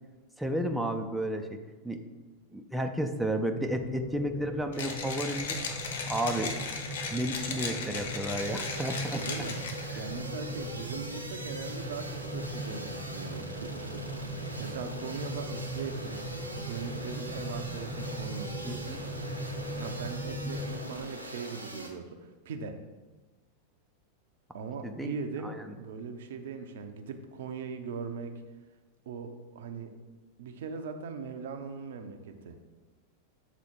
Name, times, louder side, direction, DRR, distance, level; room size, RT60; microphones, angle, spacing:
voice 1, 0.4-1.6 1.8-2.0 2.5-5.8 6.1-6.5 7.1-9.2 18.6-19.0 24.8-25.1 25.4-25.6, right 1 dB, ahead, 4 dB, 0.5 m, -32 dB
sound 1, 3.6-20.8, equal, 25° left, 1.3 m, -39 dB
Mechanisms, 4.7-10.0, left 4 dB, 60° left, 0.9 m, -36 dB
sound 2, 8.4-21.9, right 1 dB, 85° right, 1.0 m, -43 dB
voice 2, 9.1-9.6 9.9-14.0 14.6-16.2 16.6-18.9 19.7-22.8 24.5-28.4 29.1-29.9 30.4-32.6, right 5 dB, 60° right, 7 dB, 0.6 m, -40 dB
7.0 x 4.2 x 4.6 m, 1.3 s
figure-of-eight pair, 90°, 0 cm